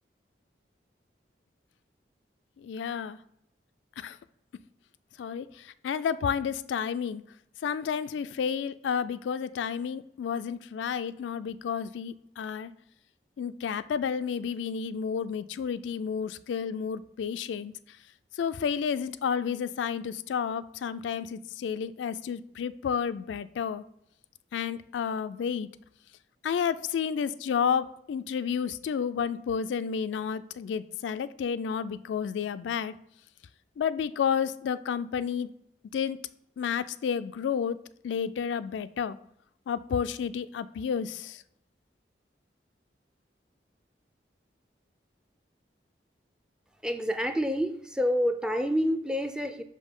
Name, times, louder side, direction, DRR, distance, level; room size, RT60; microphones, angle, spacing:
voice 1, 2.6-3.2 4.0-4.2 5.2-5.5 5.8-7.2 7.6-12.7 13.4-17.7 18.4-23.8 24.5-25.7 26.4-32.9 33.8-35.5 35.9-36.2 36.6-37.8 38.0-39.2 39.7-41.4, left 7 dB, 85° left, 0.3 m, -31 dB
voice 2, 46.8-49.6, equal, 5° right, 0.4 m, -28 dB
5.5 x 5.2 x 3.7 m
head